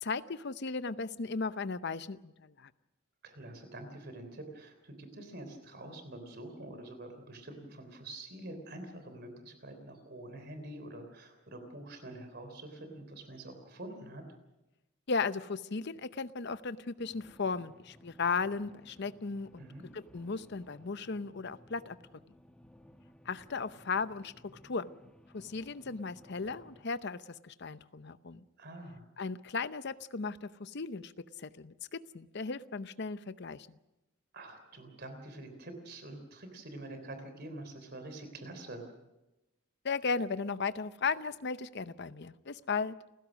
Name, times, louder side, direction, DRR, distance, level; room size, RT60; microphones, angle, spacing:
voice 1, 0.0-2.7 15.1-19.7 19.9-22.0 23.2-24.9 25.3-28.4 29.2-31.1 31.4-33.7 39.8-42.9, left 4 dB, 50° left, 14 dB, 0.7 m, -36 dB
voice 2, 3.2-14.2 19.6-19.9 28.6-29.1 34.3-38.8, right 1 dB, 50° right, 7 dB, 3.4 m, -46 dB
sound 1, 17.0-26.8, equal, 5° left, 1.3 m, -59 dB
29.5 x 16.0 x 6.3 m, 0.99 s
head